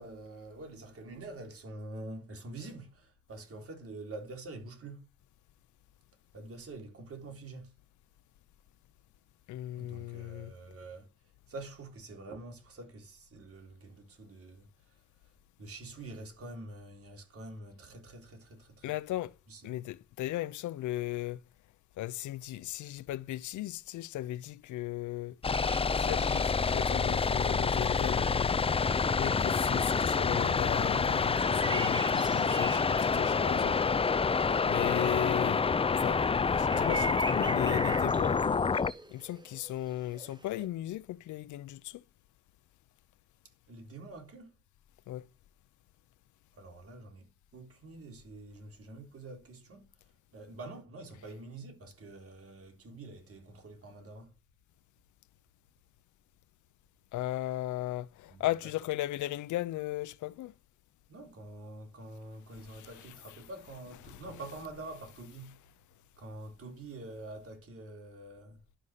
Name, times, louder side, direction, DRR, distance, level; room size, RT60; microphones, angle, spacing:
voice 1, 0.0-5.1 6.3-7.7 9.7-11.1 11.5-15.3 15.6-18.9 19.5-19.8 43.7-44.6 46.5-54.3 58.3-58.5 61.1-65.6 66.2-68.6, right 2 dB, 50° right, 3.8 m, -46 dB
voice 2, 9.5-10.5 18.8-19.3 19.6-21.4 22.0-25.4 25.9-28.7 29.1-33.8 34.6-35.6 36.0-38.6 39.1-42.0 45.1-45.3 57.1-60.5 62.7-62.9 64.0-64.2, left 15 dB, 80° left, 0.7 m, -36 dB
sound 1, 25.4-38.9, left 5 dB, 20° left, 0.5 m, -27 dB
sound 2, 25.5-27.0 27.4-27.5 27.7-27.8 28.2-28.4 28.9-34.1 34.4-40.7, right 2 dB, 15° right, 1.3 m, -42 dB
11.5 x 5.4 x 6.5 m
cardioid pair, 90°, 30 cm